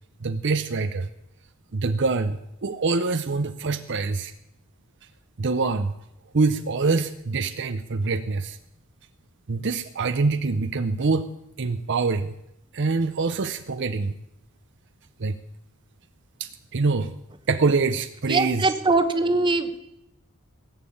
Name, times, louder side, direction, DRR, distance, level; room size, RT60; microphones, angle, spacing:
voice 1, 0.2-1.1 1.7-4.3 5.4-5.9 6.3-8.6 9.5-11.3 11.6-12.3 12.7-14.1 15.2-15.3 16.4-17.1 17.5-18.7, right 4 dB, 55° right, 9 dB, 0.7 m, -25 dB
voice 2, 18.3-19.8, right 3 dB, 20° right, 8 dB, 1.1 m, -22 dB
17.5 x 7.4 x 8.6 m, 0.81 s
head